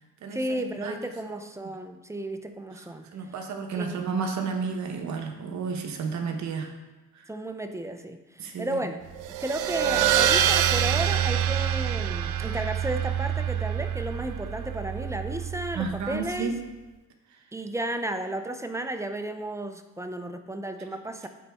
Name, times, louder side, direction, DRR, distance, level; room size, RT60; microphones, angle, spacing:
voice 1, 0.3-3.1 3.8-4.2 7.3-9.0 9.4-16.5 17.5-21.3, right 1 dB, 10° right, 7 dB, 0.5 m, -33 dB
voice 2, 3.1-6.7 8.4-8.8 15.7-16.5, right 5 dB, 65° right, 4 dB, 1.0 m, -31 dB
sound 1, 9.2-16.2, right 10 dB, 85° right, 0.5 m, -26 dB
9.2 x 4.0 x 3.5 m, 1.2 s
cardioid pair, 90°, 30 cm